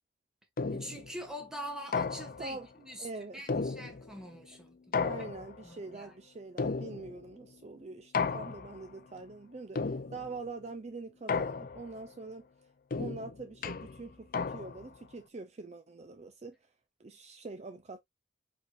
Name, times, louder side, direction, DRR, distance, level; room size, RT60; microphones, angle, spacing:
sound 1, 0.6-1.1 1.9-2.6 3.5-4.2 4.9-5.7 6.6-7.3 8.1-8.9 9.8-10.4 11.3-12.0 12.9-14.9, left 4 dB, 50° left, 0.5 m, -34 dB
voice 1, 0.7-3.1 3.3-5.0 5.6-6.1, equal, 5° right, 1.6 m, -44 dB
voice 2, 3.0-3.4 5.0-9.8 10.1-12.4 13.0-16.5 17.0-18.0, right 3 dB, 40° right, 0.6 m, -44 dB
4.7 x 4.5 x 2.5 m
head